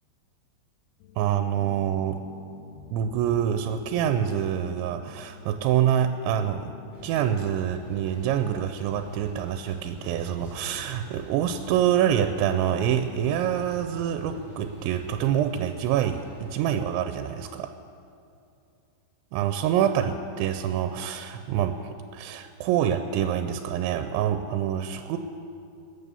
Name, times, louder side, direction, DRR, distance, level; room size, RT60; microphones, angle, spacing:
sound 1, 1.0-7.3, left 9 dB, 80° left, 2.4 m, -48 dB
voice 1, 1.2-2.2 2.9-6.7 7.0-17.7 19.3-25.2, right 9 dB, 90° right, 8 dB, 3.0 m, -26 dB
sound 2, 6.9-16.5, right 2 dB, 25° right, 3.1 m, -43 dB
22.0 x 9.2 x 6.8 m, 2.6 s
omnidirectional pair, 5.2 m